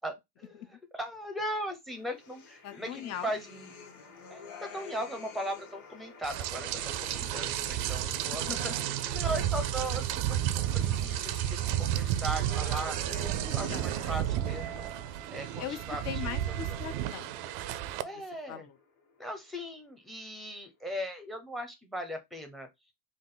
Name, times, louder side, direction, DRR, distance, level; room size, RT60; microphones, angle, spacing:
voice 1, 0.0-3.7 4.3-8.7 9.1-14.9 15.3-16.0 16.5-16.8 18.0-18.7 19.2-22.7, equal, ahead, 0.7 m, -38 dB
sound 1, 1.9-20.8, left 4 dB, 65° left, 2.0 m, -53 dB
sound 2, 2.2-5.8 6.3-9.7 10.2-15.0 15.3-16.2 16.5-17.2, left 6 dB, 80° left, 1.4 m, -50 dB
voice 2, 2.6-3.3 3.9-4.0 8.3-8.7 13.4-13.9 15.6-15.8 16.0-17.8 18.1-18.2 18.5-18.8, left 10 dB, 35° left, 0.6 m, -40 dB
Rain, 6.2-18.0, right 12 dB, 55° right, 0.5 m, -32 dB
3.6 x 2.5 x 3.8 m
supercardioid pair, 130°, 46 cm